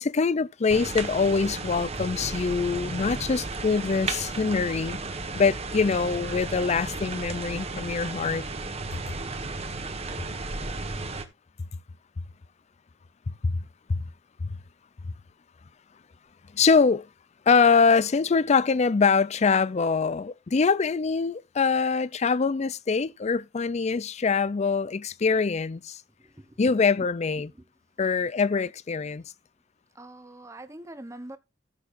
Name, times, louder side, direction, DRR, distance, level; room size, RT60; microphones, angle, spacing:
voice 1, 0.0-5.0 5.3-8.4 13.4-13.6 13.9-14.0 14.4-14.6 16.5-17.1 17.5-26.0 26.6-27.5 28.0-29.2, left 5 dB, 40° left, 0.4 m, -24 dB
sound 1, 0.7-11.2, right 3 dB, 35° right, 1.4 m, -34 dB
voice 2, 26.2-26.6 27.0-27.1 27.4-27.5 30.0-31.4, right 1 dB, 15° right, 0.9 m, -43 dB
14.5 x 6.8 x 2.6 m
head